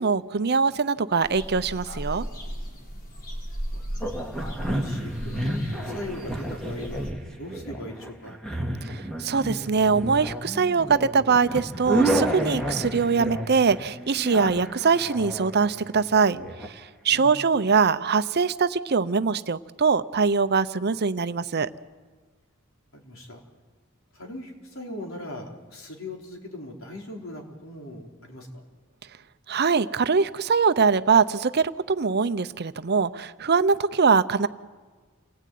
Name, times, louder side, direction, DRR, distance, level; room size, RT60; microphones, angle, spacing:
voice 1, 0.0-2.2 8.9-16.4 17.0-21.7 29.5-34.5, right 5 dB, 50° right, 13 dB, 0.7 m, -22 dB
sound 1, 1.2-7.1, equal, 45° left, 4.2 m, -36 dB
sound 2, 4.0-16.7, right 1 dB, 5° left, 2.1 m, -31 dB
voice 2, 4.3-7.1 7.4-8.4 17.1-17.4 22.9-23.4 24.1-28.7, left 1 dB, 70° left, 1 dB, 4.4 m, -39 dB
28.5 x 19.0 x 9.4 m, 1.4 s
head